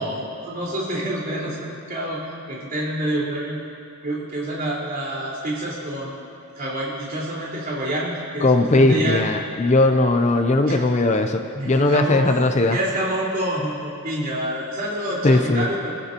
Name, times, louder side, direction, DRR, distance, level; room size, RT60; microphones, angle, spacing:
voice 1, 0.0-1.6 1.9-3.6 4.0-6.2 6.6-9.2 10.7-10.8 11.5-12.3 12.7-15.9, right 1 dB, 40° right, -6 dB, 4.4 m, -27 dB
voice 2, 8.4-12.8 15.2-15.7, left 2 dB, 30° left, 6 dB, 0.6 m, -18 dB
29.5 x 14.5 x 3.0 m, 2.6 s
head